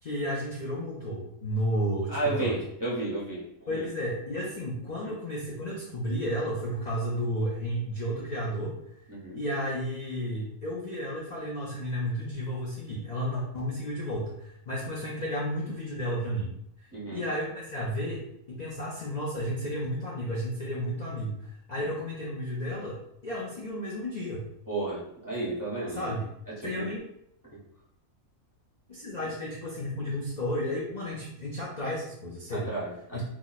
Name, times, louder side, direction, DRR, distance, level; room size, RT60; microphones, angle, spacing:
voice 1, 0.0-2.6 3.7-8.8 9.3-24.4 26.0-26.3 26.6-27.0 28.9-32.7 33.1-33.2, equal, 50° left, -5 dB, 0.5 m, -32 dB
voice 2, 2.1-3.9 5.0-5.1 9.1-9.4 16.9-17.2 21.8-21.9 24.7-26.1 26.6-26.9 27.5-27.6 32.5-33.2, right 2 dB, 20° right, -8 dB, 0.6 m, -33 dB
2.9 x 2.2 x 3.9 m, 0.72 s
omnidirectional pair, 1.5 m